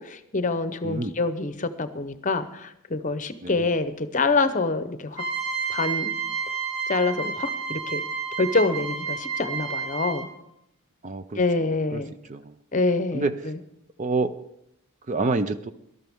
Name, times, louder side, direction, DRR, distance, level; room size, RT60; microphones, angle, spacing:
voice 1, 0.0-5.2 5.7-6.1 6.9-8.0 8.4-10.3 11.3-12.1 12.7-13.6, left 3 dB, 35° left, 11 dB, 0.7 m, -26 dB
voice 2, 0.8-1.1 3.4-3.6 11.0-12.0 12.3-12.5 13.1-13.4 14.0-14.3 15.1-15.7, right 3 dB, 35° right, 12 dB, 0.4 m, -28 dB
sound 1, 5.1-10.4, right 6 dB, 60° right, 4.9 m, -30 dB
18.5 x 12.5 x 3.6 m, 0.81 s
head